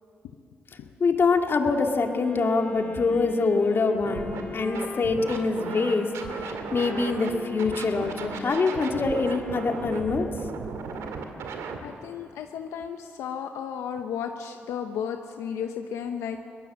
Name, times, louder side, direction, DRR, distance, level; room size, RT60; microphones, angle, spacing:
voice 1, 1.0-6.1 6.7-10.3, left 4 dB, 50° left, 3 dB, 2.3 m, -24 dB
Wind instrument woodwind instrument, 2.0-10.5, left 2 dB, 25° left, 3.4 m, -40 dB
Scratching (performance technique), 4.0-4.4 4.7-7.3 7.6-11.8, right 5 dB, 85° right, 2.1 m, -36 dB
voice 2, 11.8-16.4, left 8 dB, 85° left, 6 dB, 0.8 m, -34 dB
22.5 x 19.0 x 7.4 m, 2.4 s
cardioid pair, 65°, 5 cm